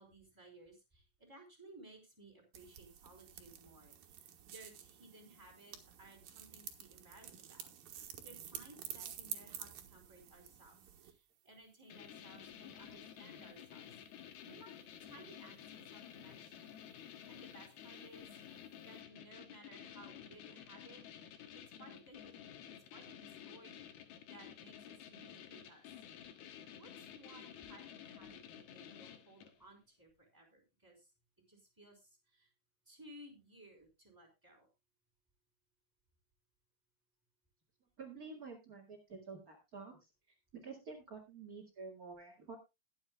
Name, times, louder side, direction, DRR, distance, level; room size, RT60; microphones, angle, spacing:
voice 1, 0.0-10.8 11.0-14.7 15.0-16.6 16.9-18.6 18.8-21.0 21.5-22.4 22.9-25.9 26.8-31.1 31.5-32.5 32.9-34.7, right 1 dB, 5° right, 0 dB, 4.0 m, -59 dB
sound 1, 2.5-11.1, right 10 dB, 65° right, 2.8 m, -50 dB
sound 2, 11.9-29.6, left 9 dB, 70° left, 3.1 m, -52 dB
voice 2, 38.0-40.1 40.5-42.5, right 4 dB, 40° right, -1 dB, 1.3 m, -49 dB
21.5 x 8.0 x 2.3 m, 0.24 s
omnidirectional pair, 5.0 m